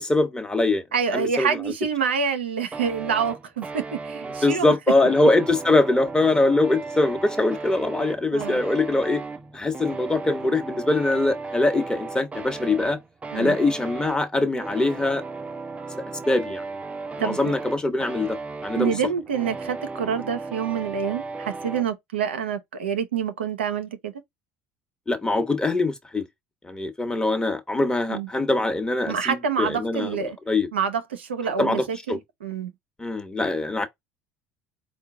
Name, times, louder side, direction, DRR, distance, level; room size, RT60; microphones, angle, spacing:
voice 1, 0.0-0.8 1.1-1.6 4.4-9.2 9.5-13.0 13.3-15.2 16.2-16.6 17.2-18.4 18.6-18.9 25.1-26.3 26.6-30.7 31.6-32.2 33.0-33.9, left 2 dB, 15° left, 1.0 m, -23 dB
voice 2, 0.9-4.7 8.3-8.6 13.3-13.6 17.2-17.5 18.7-24.1 28.1-28.3 29.1-30.4 30.7-32.7, right 7 dB, 90° right, 0.5 m, -27 dB
sound 1, 2.7-21.9, right 4 dB, 20° right, 0.5 m, -36 dB
4.4 x 2.2 x 3.7 m
hypercardioid pair, 65°, 6 cm